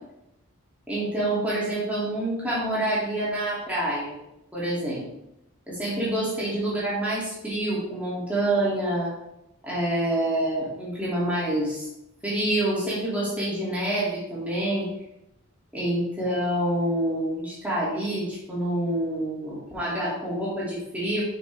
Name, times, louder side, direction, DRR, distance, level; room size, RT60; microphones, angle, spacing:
voice 1, 0.9-4.1 4.5-5.1 5.7-9.1 9.6-11.9 12.2-14.9 15.7-21.2, right 1 dB, 5° right, -8 dB, 2.7 m, -27 dB
7.0 x 6.3 x 3.5 m, 0.84 s
head